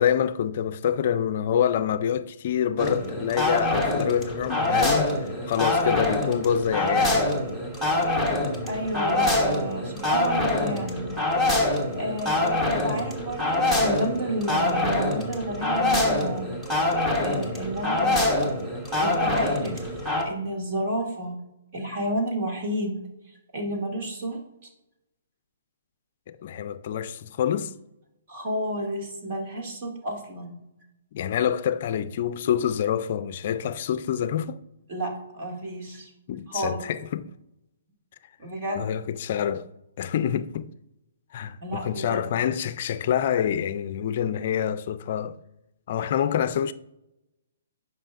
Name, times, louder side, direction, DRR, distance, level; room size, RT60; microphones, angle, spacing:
voice 1, 0.0-7.3 26.3-27.7 31.1-34.6 36.3-37.3 38.8-39.7 40.0-40.7 41.3-45.4 45.9-46.7, left 9 dB, 50° left, 0.4 m, -26 dB
sound 1, 2.8-20.2, left 2 dB, 10° right, 1.2 m, -25 dB
voice 2, 8.7-11.2 11.6-16.4 17.2-18.5 19.0-19.8 20.2-21.4 21.7-23.0 23.5-24.4 28.3-30.6 34.9-36.1 36.5-36.8 38.4-38.9 41.6-42.3, right 1 dB, 40° right, 2.3 m, -31 dB
10.0 x 5.4 x 2.5 m
hypercardioid pair, 145°, 0 cm